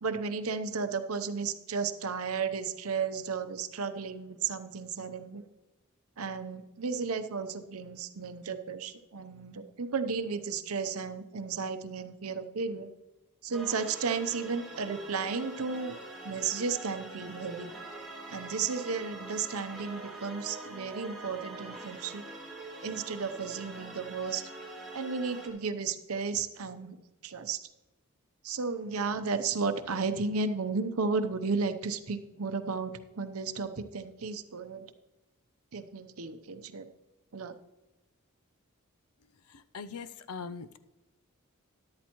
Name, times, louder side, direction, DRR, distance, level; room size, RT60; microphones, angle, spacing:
voice 1, 0.0-5.4 6.2-12.9 13.4-16.0 16.2-17.7 18.3-22.2 22.8-24.4 24.9-27.0 27.2-27.7 28.4-34.8 35.7-36.9 37.3-37.5, right 5 dB, 75° right, 9 dB, 0.7 m, -33 dB
sound 1, 13.5-25.5, right 2 dB, ahead, 2.5 m, -44 dB
voice 2, 39.7-40.8, left 5 dB, 75° left, 13 dB, 0.5 m, -40 dB
13.0 x 11.5 x 3.0 m, 1.0 s
head